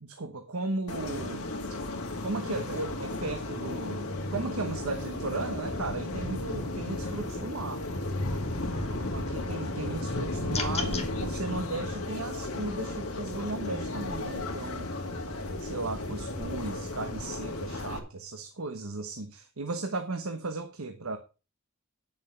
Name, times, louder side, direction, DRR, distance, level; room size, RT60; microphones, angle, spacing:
voice 1, 0.0-1.4 2.2-7.8 8.6-8.8 9.1-14.9 15.6-21.2, right 3 dB, 75° right, 7 dB, 1.1 m, -36 dB
sound 1, 0.9-18.0, left 2 dB, 85° left, 2.0 m, -34 dB
sound 2, 10.5-11.1, left 6 dB, 30° left, 1.7 m, -33 dB
10.0 x 7.1 x 5.7 m, 0.32 s
head